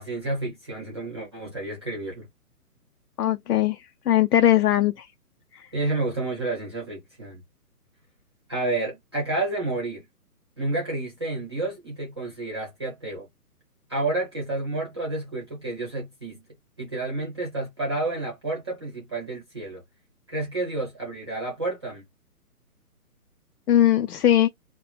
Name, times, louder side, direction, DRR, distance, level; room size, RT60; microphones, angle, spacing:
voice 1, 0.0-2.3 5.7-7.4 8.5-10.0 10.6-13.3 13.9-16.4 16.8-19.8 20.3-22.0, right 2 dB, 20° right, 0.8 m, -30 dB
voice 2, 3.2-3.8 4.1-5.1 5.5-5.6 23.7-24.5, left 12 dB, 85° left, 0.6 m, -20 dB
2.9 x 2.1 x 3.9 m
hypercardioid pair, 170°, 46 cm